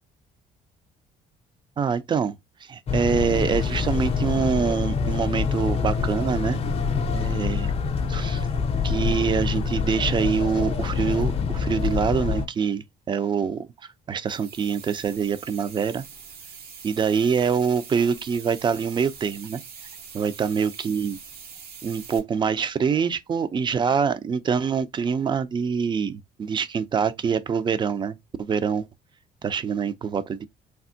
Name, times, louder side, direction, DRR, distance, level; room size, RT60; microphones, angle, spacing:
voice 1, 1.8-6.6 7.1-7.7 8.1-8.5 8.8-13.7 14.1-16.0 16.8-19.6 20.1-21.2 21.8-28.9 29.4-30.4, right 6 dB, 30° right, 0.4 m, -25 dB
sound 1, 2.9-12.5, left 5 dB, 35° left, 0.5 m, -26 dB
sound 2, 14.3-22.2, right 6 dB, 65° right, 0.9 m, -43 dB
3.3 x 2.1 x 2.6 m
cardioid pair, 110°, 17 cm